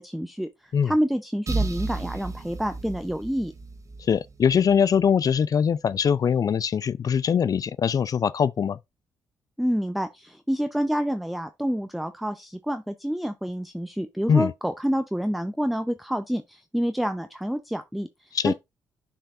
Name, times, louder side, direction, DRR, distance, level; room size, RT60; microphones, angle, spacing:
voice 1, 0.0-3.5 9.6-18.5, equal, ahead, 0.5 m, -28 dB
sound 1, 1.5-5.1, right 3 dB, 40° right, 1.3 m, -33 dB
voice 2, 4.1-8.8 14.3-14.5 18.3-18.5, left 7 dB, 45° left, 0.4 m, -22 dB
10.0 x 4.6 x 2.4 m
supercardioid pair, 55°, 8 cm